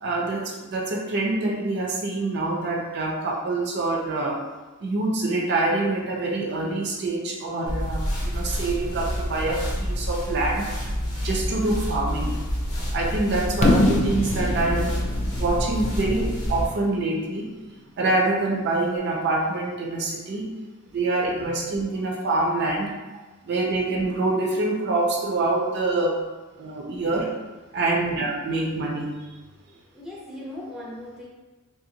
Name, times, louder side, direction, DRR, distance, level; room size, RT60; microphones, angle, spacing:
voice 1, 0.0-4.4 4.8-10.7 11.2-12.4 12.9-17.5 18.0-20.5 20.9-26.3 26.6-27.3 27.7-29.3, right 2 dB, 50° right, -1 dB, 0.4 m, -26 dB
sound 1, 7.7-16.7, equal, 85° left, 0.9 m, -28 dB
Fireworks, 13.6-17.5, left 1 dB, 30° left, 0.3 m, -25 dB
voice 2, 27.7-28.0 29.6-31.3, left 1 dB, ahead, -5 dB, 0.6 m, -40 dB
3.4 x 2.5 x 2.7 m, 1.2 s
head